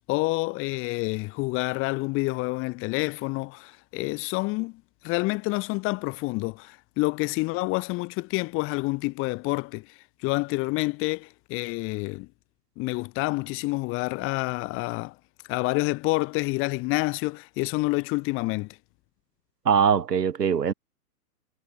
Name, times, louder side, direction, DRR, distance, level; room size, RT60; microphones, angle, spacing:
voice 1, 0.1-9.9 10.2-12.3 12.8-15.1 15.5-18.8, left 24 dB, 25° left, 4.5 m, -28 dB
voice 2, 19.7-20.7, right 7 dB, 90° right, 2.2 m, -22 dB
hypercardioid pair, 145°, 47 cm